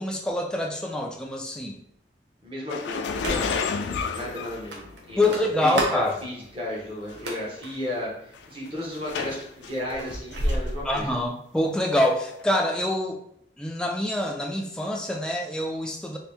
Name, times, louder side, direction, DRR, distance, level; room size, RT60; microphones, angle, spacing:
voice 1, 0.0-1.8 5.2-6.2 10.8-13.2 13.6-16.2, left 1 dB, 5° left, 0 dB, 0.3 m, -26 dB
voice 2, 2.4-3.6 4.1-5.2 5.6-11.1, left 1 dB, 30° right, -3 dB, 0.9 m, -34 dB
sound 1, 2.7-5.3 6.1-6.2 7.1-7.2 7.5-7.8 8.3-9.7 10.1-10.7 11.0-11.1 12.3-12.4, left 5 dB, 85° left, 0.3 m, -31 dB
sound 2, 3.1-3.6 4.0-4.1 4.7-6.1 7.0-7.7 8.4-8.7 9.1-11.3, right 1 dB, 85° right, 0.8 m, -31 dB
2.9 x 2.6 x 3.4 m, 0.73 s
head